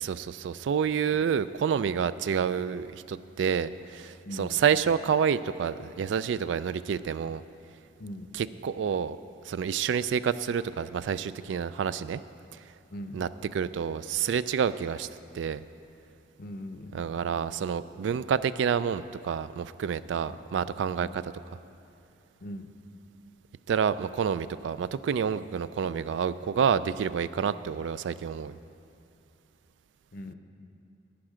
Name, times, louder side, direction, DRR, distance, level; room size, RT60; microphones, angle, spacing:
voice 1, 0.0-7.4 8.3-9.2 9.5-12.2 13.1-15.1 15.3-15.6 16.9-21.1 23.7-28.6, right 7 dB, 75° right, 15 dB, 0.3 m, -28 dB
voice 2, 4.2-4.7 8.0-8.4 12.9-13.2 16.4-17.1 20.3-20.4 21.0-21.1 22.4-22.7 30.1-30.3, left 1 dB, 55° left, 8 dB, 0.6 m, -41 dB
12.0 x 8.9 x 5.0 m, 2.7 s
head